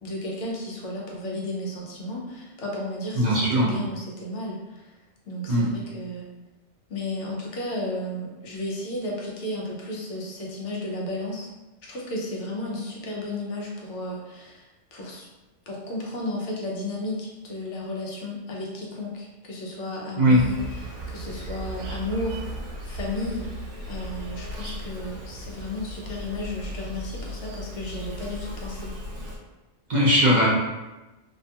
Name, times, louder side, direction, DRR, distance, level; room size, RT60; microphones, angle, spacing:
voice 1, 0.0-4.9 5.3-6.2 6.9-11.5 11.8-15.3 15.7-22.4 22.8-23.5 23.9-28.9, left 1 dB, 80° left, -3 dB, 1.0 m, -33 dB
voice 2, 3.1-3.7 5.5-5.6 20.2-20.4 29.9-30.5, equal, 50° right, -6 dB, 0.8 m, -19 dB
Insect, 20.3-29.4, equal, 85° right, 0.9 m, -36 dB
2.7 x 2.2 x 2.7 m, 1.1 s
omnidirectional pair, 1.2 m